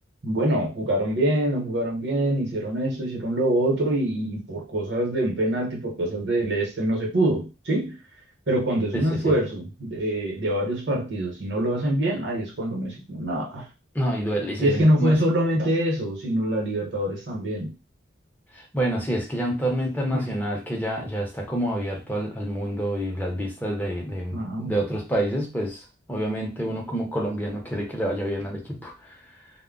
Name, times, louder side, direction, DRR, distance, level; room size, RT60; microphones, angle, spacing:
voice 1, 0.2-8.0 8.5-13.7 14.6-17.7 20.1-20.3 24.3-24.7, right 1 dB, 60° right, -1 dB, 0.9 m, -25 dB
voice 2, 8.9-9.3 13.9-15.2 18.5-25.8 26.1-29.2, right 1 dB, 10° left, -1 dB, 0.6 m, -28 dB
2.1 x 2.0 x 3.7 m, 0.29 s
head